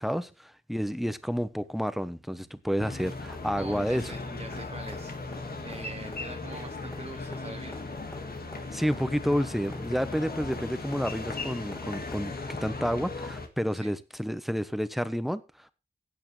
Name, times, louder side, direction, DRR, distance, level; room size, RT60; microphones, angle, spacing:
voice 1, 0.0-4.0 8.7-12.3 12.6-15.7, equal, ahead, 1.0 m, -30 dB
sound 1, 2.8-13.5, left 3 dB, 65° left, 1.9 m, -37 dB
sound 2, 3.0-12.2 14.1-14.2, left 1 dB, 20° left, 4.0 m, -51 dB
voice 2, 3.6-7.8 13.7-14.0, right 3 dB, 35° right, 1.1 m, -44 dB
15.5 x 8.8 x 3.3 m
cardioid pair, 60°, 17 cm